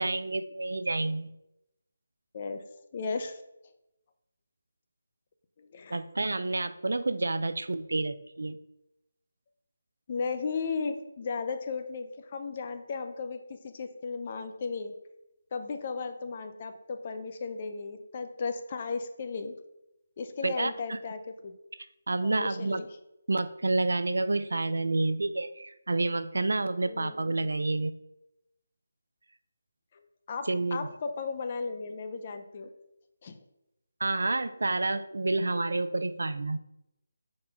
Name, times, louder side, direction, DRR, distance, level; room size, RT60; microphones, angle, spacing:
voice 1, 0.0-1.3 5.9-8.6 20.4-21.0 22.1-22.8 23.3-28.0 30.5-30.9 34.0-36.6, right 2 dB, 80° right, 12 dB, 0.4 m, -29 dB
voice 2, 2.3-2.6 2.9-3.4 5.6-6.0 10.1-14.9 15.5-19.6 20.2-21.5 22.2-22.9 26.9-27.2 29.9-32.7 33.2-33.4, left 4 dB, 35° left, 8 dB, 0.6 m, -35 dB
4.3 x 4.2 x 5.4 m, 0.89 s
figure-of-eight pair, 165°, 0 cm